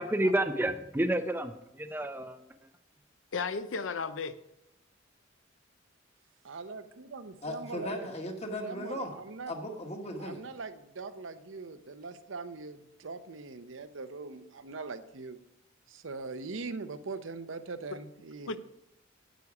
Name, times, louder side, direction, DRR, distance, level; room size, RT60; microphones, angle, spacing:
voice 1, 0.0-2.4, right 1 dB, 10° right, 9 dB, 0.5 m, -30 dB
voice 2, 3.3-4.4 18.0-18.1 18.5-18.6, left 4 dB, 70° left, 12 dB, 0.6 m, -34 dB
voice 3, 6.4-8.1 8.6-9.5 10.2-15.4 15.9-18.5, right 3 dB, 70° right, 11 dB, 0.7 m, -41 dB
voice 4, 7.4-9.1 9.5-10.4, left 1 dB, 30° left, 3 dB, 1.4 m, -37 dB
9.1 x 8.5 x 4.8 m, 0.87 s
head